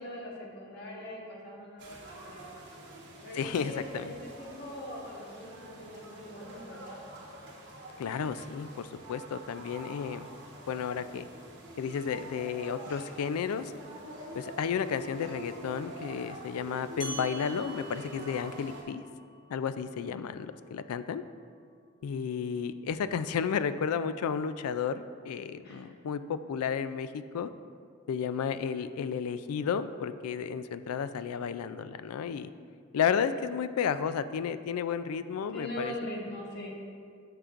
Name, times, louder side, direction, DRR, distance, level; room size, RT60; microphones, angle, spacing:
voice 1, 0.0-2.6 3.2-7.0 25.6-25.9 35.5-36.7, left 1 dB, 45° left, -2 dB, 1.2 m, -42 dB
sound 1, 1.8-18.8, right 1 dB, 55° right, 1.1 m, -46 dB
voice 2, 3.4-4.1 8.0-10.3 10.7-11.3 11.8-13.7 14.3-19.0 19.5-21.2 22.0-27.5 28.1-32.5 32.9-35.9, left 7 dB, 85° left, 13 dB, 0.3 m, -32 dB
sound 2, 17.0-21.8, right 3 dB, 25° left, 0.9 m, -48 dB
10.0 x 6.6 x 2.5 m, 2.2 s
head